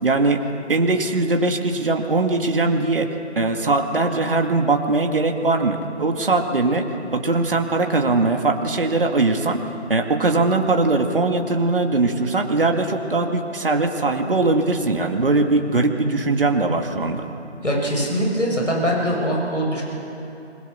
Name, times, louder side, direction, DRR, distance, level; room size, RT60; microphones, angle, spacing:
voice 1, 0.0-0.4 0.7-6.9 7.1-9.6 9.9-17.3, right 3 dB, 50° right, 3 dB, 2.2 m, -20 dB
voice 2, 17.6-19.8, equal, 90° left, -1 dB, 6.5 m, -22 dB
25.5 x 21.5 x 7.1 m, 3.0 s
figure-of-eight pair, 165°, 36 cm